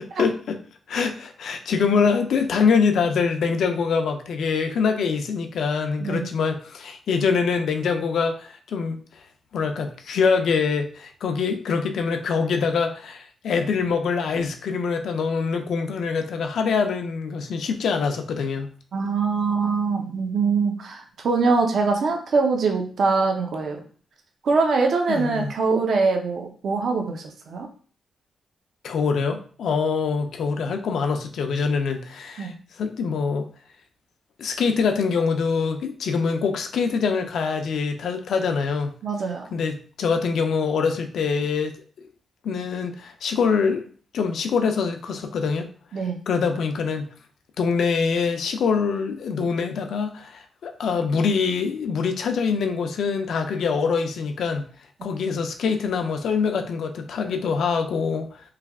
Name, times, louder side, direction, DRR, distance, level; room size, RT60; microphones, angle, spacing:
voice 1, 0.2-0.6 0.9-9.0 9.5-18.7 25.1-25.5 28.8-33.5 34.4-39.0 39.5-41.7 42.4-43.8 44.1-45.7 46.3-47.1 47.6-54.7 55.0-58.4, left 5 dB, 80° left, 6 dB, 0.4 m, -24 dB
voice 2, 18.9-23.8 24.4-27.7 32.4-32.5 39.0-39.5 45.9-46.2, right 4 dB, 65° right, 3 dB, 0.6 m, -23 dB
3.2 x 2.3 x 3.4 m, 0.44 s
cardioid pair, 115°, 0 cm